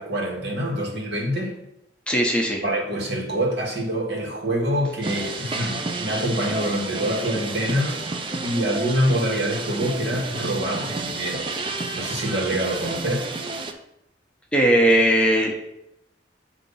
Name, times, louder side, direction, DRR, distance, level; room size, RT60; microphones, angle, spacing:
voice 1, 0.0-1.6 2.6-8.0 8.4-11.5 11.9-13.4, equal, 65° right, -1 dB, 1.4 m, -25 dB
voice 2, 2.1-2.6 14.5-15.7, right 1 dB, 5° left, -1 dB, 0.7 m, -19 dB
sound 1, 5.0-13.7, right 3 dB, 30° right, 0.5 m, -31 dB
8.0 x 2.8 x 5.4 m, 0.84 s
head